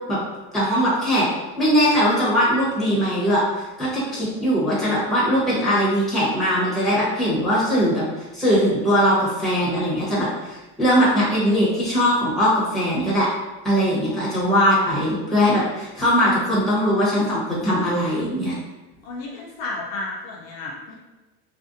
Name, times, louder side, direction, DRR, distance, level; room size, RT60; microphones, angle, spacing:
voice 1, 0.5-1.3 1.6-3.4 3.8-8.0 8.3-13.3 13.6-18.5, equal, ahead, -8 dB, 0.8 m, -20 dB
voice 2, 19.0-20.9, left 2 dB, 50° left, -3 dB, 0.5 m, -32 dB
2.5 x 2.0 x 2.5 m, 1.1 s
supercardioid pair, 135°, 31 cm